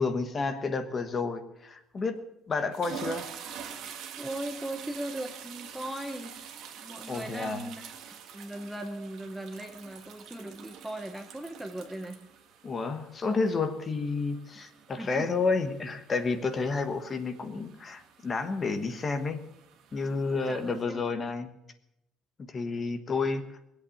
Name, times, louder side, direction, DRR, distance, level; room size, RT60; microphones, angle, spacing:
voice 1, 0.0-2.2 2.5-3.3 7.1-7.6 12.6-19.4 19.9-21.5 22.4-23.5, left 4 dB, 20° left, 8 dB, 1.3 m, -30 dB
sound 1, 2.0-2.2 2.6-20.8, right 7 dB, 50° right, 1.6 m, -47 dB
voice 2, 4.2-6.3 6.8-7.9 8.3-12.2 14.5-14.7 15.0-15.3 20.5-21.0, right 1 dB, 5° right, 6 dB, 0.8 m, -38 dB
20.0 x 8.3 x 8.5 m, 0.85 s
cardioid pair, 175°, 0 cm